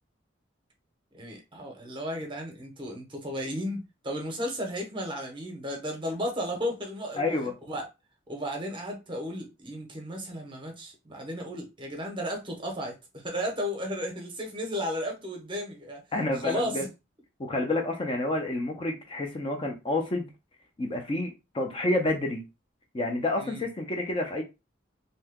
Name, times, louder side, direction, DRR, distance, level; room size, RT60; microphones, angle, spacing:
voice 1, 1.1-7.2 7.7-7.8 8.3-16.0 16.4-16.9 23.4-23.6, equal, 25° right, 0.7 m, -34 dB
voice 2, 7.2-7.5 16.1-16.8 17.4-20.3 20.8-22.4 22.9-24.4, left 2 dB, 25° left, 0.4 m, -29 dB
2.7 x 2.2 x 3.5 m
head